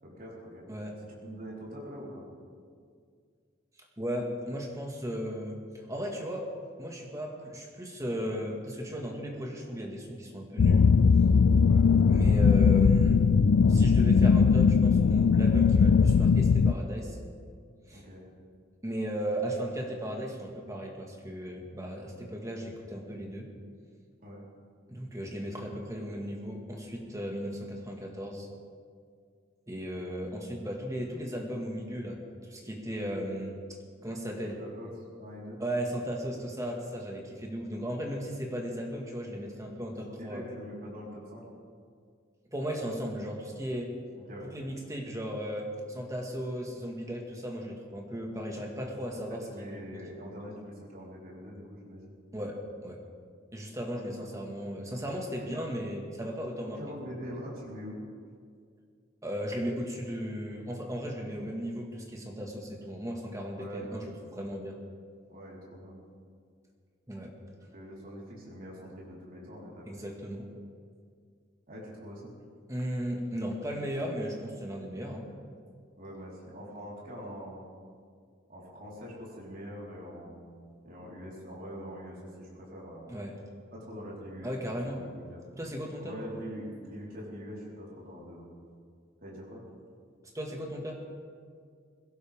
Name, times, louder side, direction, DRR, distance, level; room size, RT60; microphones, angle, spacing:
voice 1, 0.0-0.7 1.1-2.2 11.6-11.9 17.9-18.2 24.2-24.4 34.4-34.9 35.2-35.6 39.9-41.4 44.3-44.5 49.1-52.1 54.0-54.3 55.5-55.6 56.7-58.0 63.5-64.3 65.3-66.0 67.6-69.8 71.7-72.3 75.3-75.4 76.0-77.6 78.5-80.5 80.8-83.1 83.7-84.5 84.9-85.4 86.0-88.5 89.2-89.6, equal, 50° right, -5 dB, 4.4 m, -43 dB
voice 2, 0.7-1.0 4.0-6.5 6.8-10.8 12.1-13.2 13.7-17.2 17.9-18.0 18.8-23.5 24.9-28.5 29.7-34.6 35.6-40.5 42.5-43.9 44.5-49.4 49.7-50.0 52.3-53.0 53.5-56.8 57.0-57.1 59.2-64.0 64.3-64.8 67.1-67.3 69.9-70.5 72.7-75.2 83.1-83.3 84.4-85.0 85.6-86.2 90.3-91.0, equal, 15° right, 0 dB, 2.0 m, -36 dB
sound 1, 10.6-16.7, left 5 dB, 85° left, 0.4 m, -20 dB
21.0 x 17.0 x 3.7 m, 2.1 s
head